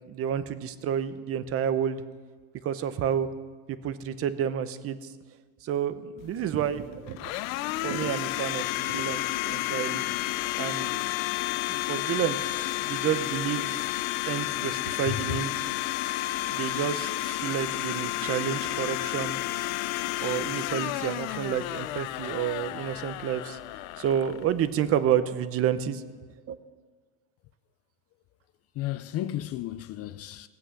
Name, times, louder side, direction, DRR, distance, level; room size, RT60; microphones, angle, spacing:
voice 1, 0.1-2.0 2.6-3.3 3.7-5.0 5.6-7.3 7.7-10.0 10.6-11.0 11.7-13.8 14.2-15.5 16.5-19.4 20.2-23.6 24.0-26.0 26.5-26.6, right 9 dB, 35° right, 0.7 m, -30 dB
Domestic sounds home sounds, 6.2-25.0, left 17 dB, 85° left, 0.6 m, -31 dB
voice 2, 15.1-15.4 28.8-30.5, left 13 dB, 40° left, 0.4 m, -33 dB
18.5 x 8.0 x 6.4 m
cardioid pair, 140°, 40 cm